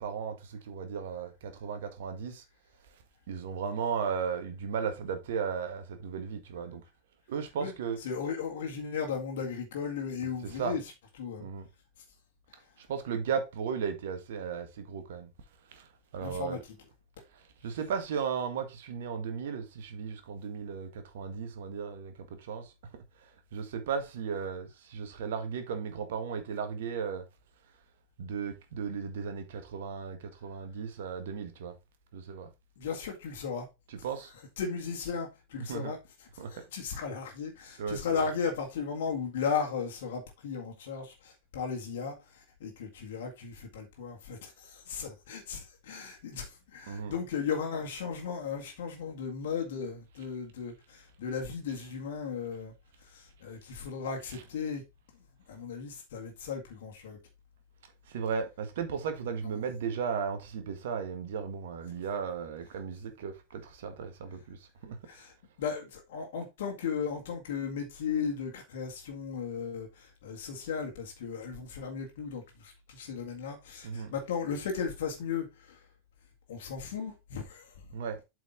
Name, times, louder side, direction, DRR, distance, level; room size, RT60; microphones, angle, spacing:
voice 1, 0.0-2.4 3.3-6.8 7.3-8.0 10.4-10.8 11.4-11.7 12.8-15.3 15.7-15.9 16.1-16.6 17.3-27.2 28.2-31.7 32.1-32.5 33.9-34.3 35.6-35.9 36.4-36.6 37.8-38.3 46.9-47.2 51.7-51.8 54.3-54.5 58.1-65.0 73.8-74.1 77.9-78.2, right 6 dB, 55° right, 1.7 m, -36 dB
voice 2, 8.0-10.9 11.2-11.5 12.5-12.6 16.2-16.6 32.8-33.7 34.6-52.7 53.0-54.8 55.5-57.2 59.4-59.6 65.1-75.9 76.5-77.8, left 6 dB, 55° left, 1.9 m, -36 dB
8.0 x 4.9 x 3.7 m
figure-of-eight pair, 90°, 0 cm